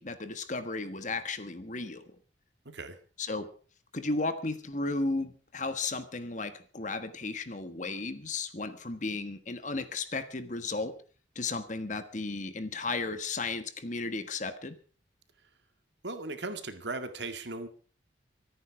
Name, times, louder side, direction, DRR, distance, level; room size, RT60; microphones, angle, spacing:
voice 1, 0.0-2.0 3.2-3.5 3.9-10.9 11.3-14.8, left 3 dB, 40° left, 11 dB, 1.4 m, -34 dB
voice 2, 2.7-3.0 16.0-17.7, right 3 dB, 70° right, 8 dB, 2.0 m, -37 dB
25.0 x 9.5 x 4.9 m, 0.39 s
head